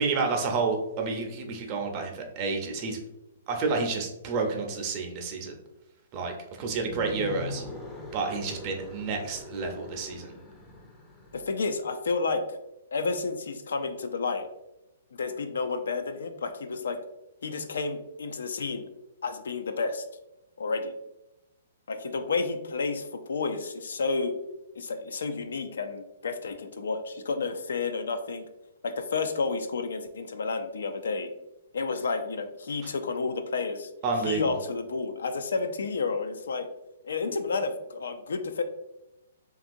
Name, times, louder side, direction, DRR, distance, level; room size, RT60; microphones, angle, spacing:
voice 1, 0.0-3.0 3.5-5.6 6.1-7.6 8.1-10.3 34.0-34.6, right 4 dB, 35° right, 2 dB, 0.5 m, -30 dB
sound 1, 6.7-11.8, left 2 dB, 10° left, 0.5 m, -42 dB
voice 2, 11.3-12.6 12.9-14.5 15.1-17.0 17.4-18.8 19.2-20.0 20.6-20.9 21.9-24.3 24.8-28.5 28.8-31.3 31.7-33.9 34.2-36.7 37.0-38.6, left 4 dB, 75° left, 7 dB, 0.3 m, -31 dB
2.8 x 2.4 x 2.5 m, 0.92 s
hypercardioid pair, 130°, 0 cm